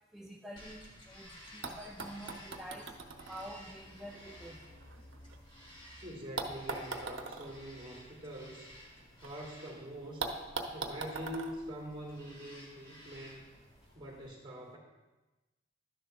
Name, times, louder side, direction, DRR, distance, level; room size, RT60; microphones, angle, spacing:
voice 1, 0.1-3.0 3.3-4.6, equal, ahead, -1 dB, 0.4 m, -48 dB
Bird vocalization bird call bird song, 0.6-14.3, equal, 25° left, 1.6 m, -55 dB
sound 1, 1.2-1.3 1.6-5.7 6.4-9.3 9.6-9.7 10.2-12.6 13.6-13.7, right 3 dB, 70° right, 1.0 m, -43 dB
sound 2, 2.9-9.6, left 1 dB, 50° left, 3.2 m, -60 dB
voice 2, 6.0-8.8 9.2-10.3 10.7-13.5 13.9-14.8, right 1 dB, 25° right, -2 dB, 2.5 m, -44 dB
12.5 x 10.5 x 2.3 m, 1.1 s
head